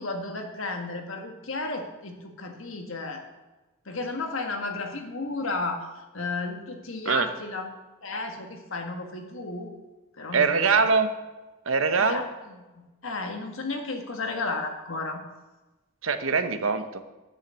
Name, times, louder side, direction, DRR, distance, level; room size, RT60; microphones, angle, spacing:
voice 1, 0.0-3.2 3.8-7.7 8.0-9.7 10.2-10.7 12.0-15.2, left 3 dB, 65° left, 4 dB, 1.7 m, -33 dB
voice 2, 10.3-11.1 11.7-12.2 16.0-17.0, right 5 dB, 70° right, 9 dB, 0.9 m, -23 dB
9.6 x 6.6 x 8.4 m, 1.1 s
head